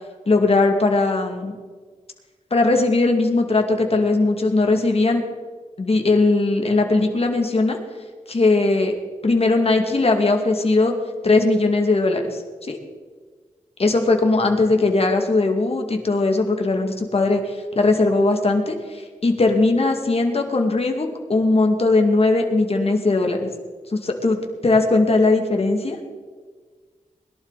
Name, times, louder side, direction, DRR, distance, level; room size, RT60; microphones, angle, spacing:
voice 1, 0.3-1.6 2.5-5.2 5.8-7.8 8.3-8.9 9.2-10.9 11.2-12.8 13.8-23.5 23.9-24.4 24.6-26.0, left 3 dB, 50° left, 3 dB, 2.3 m, -19 dB
21.5 x 11.5 x 4.2 m, 1.5 s
wide cardioid pair, 90°, 13 cm